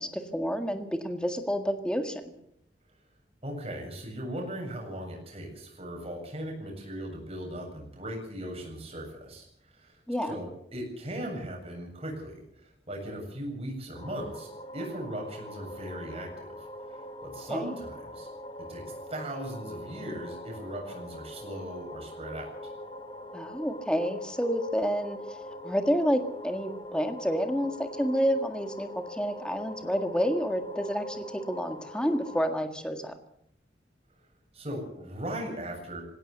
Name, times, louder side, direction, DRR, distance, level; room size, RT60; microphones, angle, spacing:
voice 1, 0.0-2.3 10.1-10.4 17.5-17.7 23.3-25.2 25.6-33.1, equal, 5° left, 6 dB, 1.8 m, -29 dB
voice 2, 3.4-10.0 10.3-18.3 18.7-18.8 19.1-22.7 34.5-36.0, right 1 dB, 35° right, 1 dB, 7.7 m, -38 dB
sound 1, 13.9-32.5, equal, 25° left, 1.3 m, -42 dB
19.5 x 17.5 x 8.0 m, 0.73 s
head